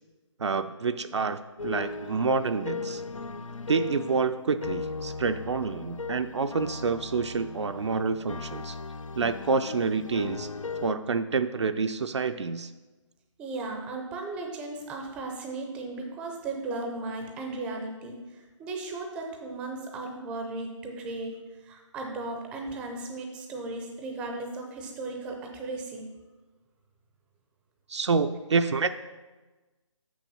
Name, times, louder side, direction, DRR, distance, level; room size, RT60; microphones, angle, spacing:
voice 1, 0.4-3.0 3.7-8.8 9.2-10.5 10.8-12.7 27.9-28.9, right 4 dB, 60° right, 9 dB, 0.4 m, -28 dB
sound 1, 1.6-10.9, left 4 dB, 90° left, 0.4 m, -37 dB
voice 2, 13.4-21.4 21.6-26.0, right 2 dB, 5° right, 2 dB, 0.5 m, -36 dB
6.5 x 6.1 x 5.4 m, 1.2 s
figure-of-eight pair, 150°, 16 cm